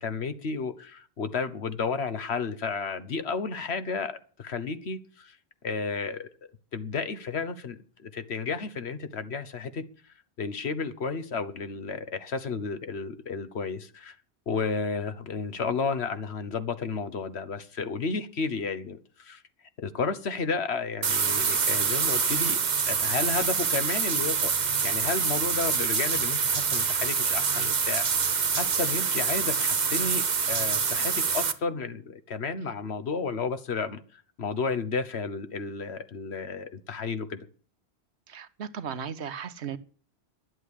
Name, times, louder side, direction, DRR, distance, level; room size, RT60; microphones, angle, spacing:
voice 1, 0.0-5.4 5.6-6.3 6.7-9.8 10.4-14.1 14.5-19.4 19.8-22.6 22.9-37.4, left 4 dB, 75° left, 1.4 m, -32 dB
sound 1, 21.0-31.5, right 6 dB, 45° right, 1.0 m, -26 dB
voice 2, 38.3-39.8, right 7 dB, 80° right, 1.2 m, -36 dB
11.5 x 8.0 x 10.0 m
omnidirectional pair, 1.1 m